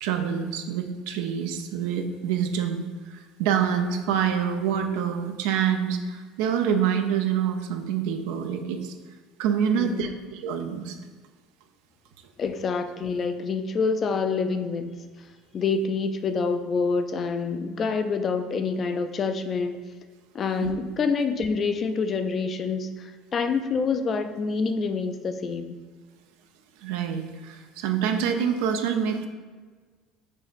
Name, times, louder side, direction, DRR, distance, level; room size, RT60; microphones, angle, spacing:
voice 1, 0.0-8.9 9.4-11.0 20.6-20.7 26.8-29.3, right 8 dB, 80° right, 6 dB, 0.4 m, -26 dB
voice 2, 9.7-10.2 12.4-15.0 15.5-19.8 20.3-25.8, left 4 dB, 35° left, 9 dB, 0.3 m, -27 dB
6.2 x 2.9 x 2.5 m, 1.4 s
supercardioid pair, 105°, 0 cm